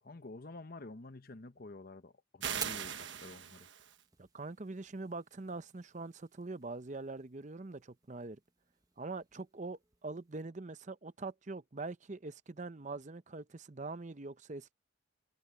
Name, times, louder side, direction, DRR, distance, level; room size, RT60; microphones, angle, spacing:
voice 1, 0.0-3.7, left 2 dB, 45° left, 0.9 m, -49 dB
sound 1, 2.4-4.0, right 8 dB, 65° right, 1.3 m, -40 dB
Fire, 2.5-10.4, right 6 dB, 20° right, 1.2 m, -52 dB
voice 2, 4.2-8.4 9.0-14.7, right 3 dB, 35° right, 0.7 m, -43 dB
head